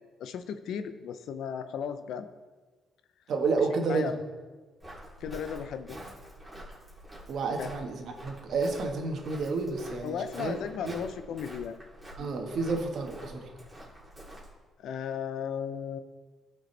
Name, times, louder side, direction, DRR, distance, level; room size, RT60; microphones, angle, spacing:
voice 1, 0.0-2.3 3.9-4.2 5.2-6.0 7.6-7.7 10.0-11.8 14.8-16.0, left 7 dB, 75° left, 11 dB, 0.5 m, -35 dB
voice 2, 3.3-4.1 7.3-10.6 10.8-11.0 12.2-13.5, right 4 dB, 65° right, 3 dB, 1.3 m, -30 dB
Walk footsteps, 4.8-14.6, equal, 10° right, 2.9 m, -47 dB
14.5 x 5.1 x 3.3 m, 1.3 s
cardioid pair, 90°, 0 cm